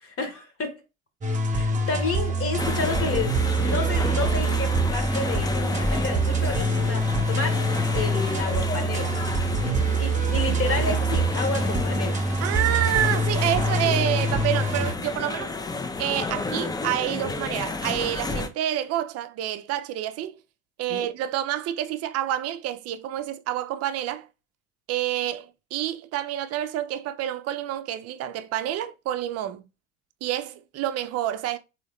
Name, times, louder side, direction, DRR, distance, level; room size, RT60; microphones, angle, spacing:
voice 1, 0.0-0.8 1.5-7.6 7.9-9.1 10.0-12.2 20.9-21.1, left 4 dB, 40° left, 1.1 m, -30 dB
sound 1, 1.2-14.9, right 2 dB, 20° right, 1.0 m, -25 dB
sound 2, 2.6-18.5, left 3 dB, 10° left, 0.4 m, -31 dB
voice 2, 9.6-9.9 12.4-15.6 16.0-20.4 20.8-24.3 24.9-29.6 30.2-31.6, right 12 dB, 45° right, 0.5 m, -28 dB
3.6 x 2.8 x 3.1 m
hypercardioid pair, 70°, 36 cm